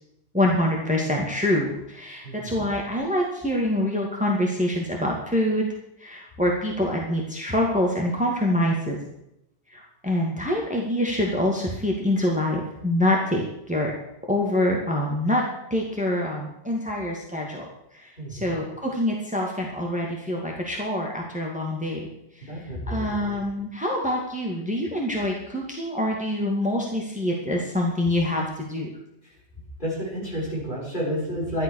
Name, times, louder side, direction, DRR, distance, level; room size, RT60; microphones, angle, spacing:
voice 1, 0.3-5.7 6.0-9.0 9.7-13.9 14.3-15.4 15.7-17.7 18.0-22.1 22.9-28.9, left 1 dB, 5° right, -1 dB, 2.4 m, -25 dB
voice 2, 2.2-2.7 18.2-18.6 22.5-23.1 29.8-31.6, equal, 40° left, -5 dB, 6.6 m, -30 dB
13.0 x 11.5 x 6.6 m, 0.80 s
omnidirectional pair, 1.2 m